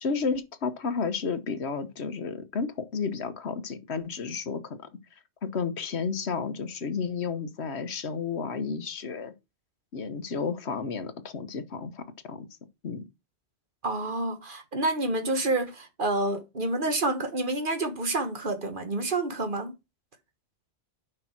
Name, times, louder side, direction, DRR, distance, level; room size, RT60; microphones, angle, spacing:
voice 1, 0.0-4.9 5.4-9.3 9.9-12.5 12.8-13.0, left 5 dB, 80° left, 1.3 m, -32 dB
voice 2, 13.8-19.7, right 2 dB, 50° right, 1.6 m, -28 dB
6.6 x 5.6 x 5.8 m
omnidirectional pair, 1.1 m